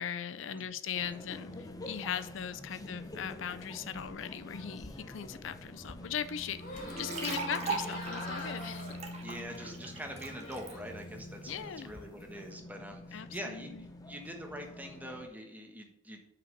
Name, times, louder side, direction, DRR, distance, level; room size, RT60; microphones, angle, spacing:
voice 1, 0.0-1.5 1.9-8.9 11.5-11.9 13.1-13.8, left 8 dB, 80° left, 12 dB, 0.5 m, -39 dB
sound 1, 0.9-15.3, left 1 dB, 20° left, 0.7 m, -46 dB
sound 2, 6.5-11.0 11.3-12.1, left 1 dB, 45° left, 2.3 m, -45 dB
sound 3, 6.9-10.7, right 4 dB, 35° right, 1.3 m, -39 dB
voice 2, 9.2-16.2, equal, 10° right, 3 dB, 1.2 m, -44 dB
5.9 x 4.9 x 6.6 m, 0.79 s
head